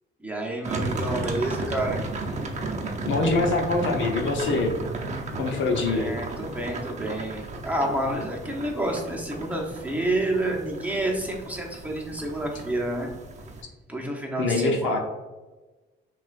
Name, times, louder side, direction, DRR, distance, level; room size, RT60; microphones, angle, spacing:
voice 1, 0.2-2.0 5.3-13.1 13.9-15.0, right 1 dB, 5° right, -1 dB, 0.9 m, -29 dB
sound 1, 0.6-13.6, right 2 dB, 35° right, 0.7 m, -34 dB
voice 2, 3.1-4.7 5.4-6.1 14.4-15.0, left 3 dB, 75° left, 2 dB, 0.8 m, -24 dB
5.9 x 2.4 x 2.5 m, 1.2 s
cardioid pair, 90°, 20 cm